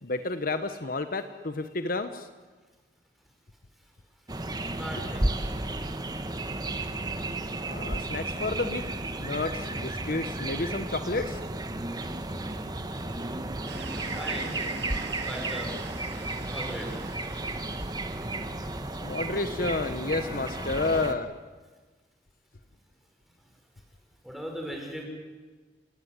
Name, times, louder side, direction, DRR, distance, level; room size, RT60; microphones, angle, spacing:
voice 1, 0.0-2.3 7.7-8.8 9.2-11.4 19.0-21.3, left 3 dB, 55° left, 9 dB, 1.1 m, -30 dB
sound 1, 4.3-21.2, right 2 dB, 25° right, 1.5 m, -33 dB
voice 2, 4.8-5.3 14.2-14.6 15.2-15.8 16.5-16.9 24.2-25.0, equal, ahead, 0 dB, 6.3 m, -37 dB
sound 2, 13.7-18.6, right 5 dB, 80° right, 2.4 m, -44 dB
28.5 x 18.0 x 9.7 m, 1.3 s
head